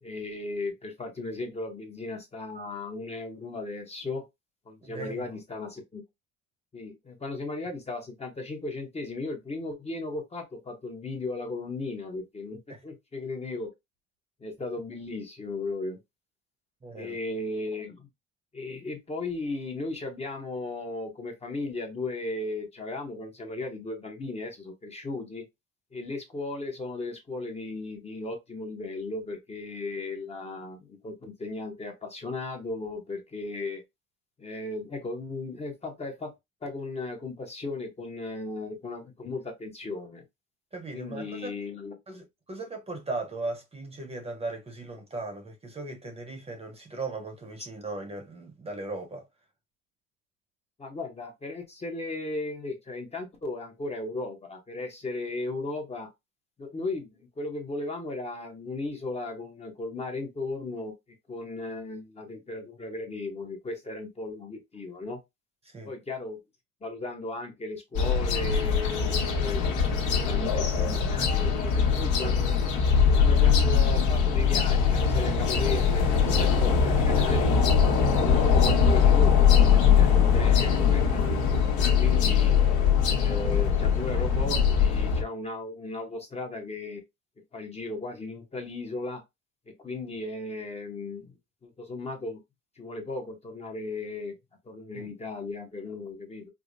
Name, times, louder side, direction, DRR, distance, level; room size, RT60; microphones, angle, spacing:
voice 1, 0.0-4.2 4.7-6.0 6.7-13.7 14.4-16.0 17.0-18.1 18.5-25.5 25.9-33.8 34.4-36.3 36.6-40.2 40.9-42.0 50.8-56.1 56.6-60.9 61.3-65.2 65.8-66.4 66.8-72.6 73.1-77.6 78.2-81.6 82.0-82.6 83.0-87.0 87.5-89.2 89.7-91.3 91.6-92.4 92.8-94.4 94.6-96.5, left 2 dB, 20° left, 0.9 m, -36 dB
voice 2, 4.8-5.2 12.7-12.8 16.8-17.2 40.7-41.6 42.1-49.2 65.6-65.9 94.9-95.1, right 2 dB, 20° right, 0.8 m, -37 dB
sound 1, 67.9-85.2, left 6 dB, 70° left, 1.3 m, -22 dB
4.8 x 2.1 x 2.6 m
cardioid pair, 130°, 32 cm